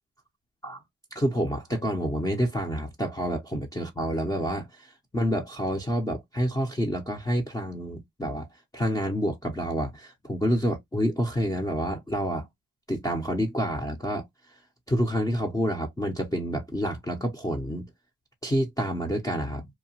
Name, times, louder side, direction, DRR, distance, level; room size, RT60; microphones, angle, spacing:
voice 1, 1.1-8.5 8.7-12.5 12.9-14.2 14.9-17.9 18.4-19.7, equal, 10° left, 0.6 m, -28 dB
2.8 x 2.2 x 2.7 m
cardioid pair, 90°, 30 cm